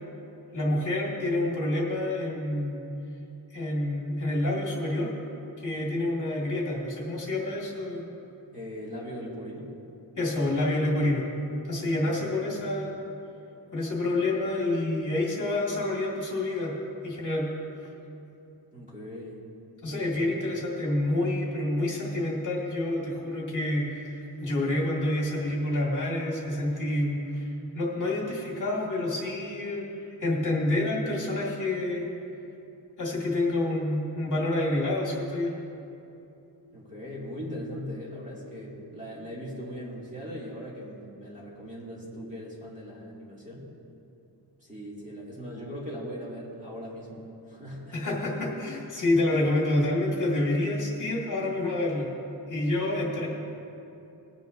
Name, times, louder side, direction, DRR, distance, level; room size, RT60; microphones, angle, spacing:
voice 1, 0.5-2.8 3.5-5.1 5.6-8.0 10.2-11.2 11.6-12.9 13.7-16.8 17.0-17.5 19.8-27.4 27.7-29.8 30.2-32.0 33.0-35.5 47.9-52.1 52.5-53.3, left 1 dB, 45° left, -4 dB, 2.1 m, -28 dB
voice 2, 8.5-9.7 11.9-12.2 18.7-19.4 19.8-20.3 36.7-43.7 44.6-48.0 52.8-53.1, equal, 15° right, -6 dB, 2.4 m, -40 dB
21.0 x 9.3 x 2.6 m, 2.8 s
wide cardioid pair, 145°, 44 cm